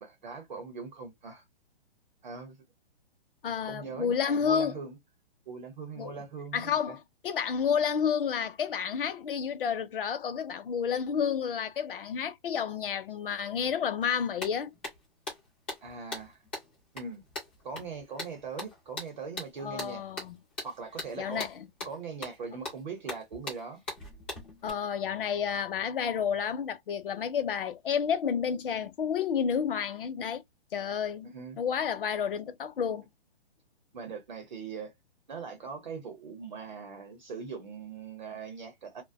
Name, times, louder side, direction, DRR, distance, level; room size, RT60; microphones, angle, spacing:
voice 1, 0.0-1.4 2.2-2.6 3.6-5.0 5.5-7.0 15.8-16.4 16.9-17.2 17.6-20.0 20.6-21.5 21.8-23.8 31.3-31.6 33.9-34.9 35.3-39.0, right 5 dB, 50° right, 0.8 m, -41 dB
voice 2, 3.4-4.8 6.0-6.1 6.5-14.7 19.6-20.4 21.2-21.7 24.6-30.4 30.7-31.3 31.6-33.1, left 7 dB, 60° left, 0.6 m, -30 dB
sound 1, 14.0-14.1 14.4-24.7, left 2 dB, 10° left, 0.5 m, -41 dB
2.4 x 2.2 x 2.6 m
hypercardioid pair, 175°, 31 cm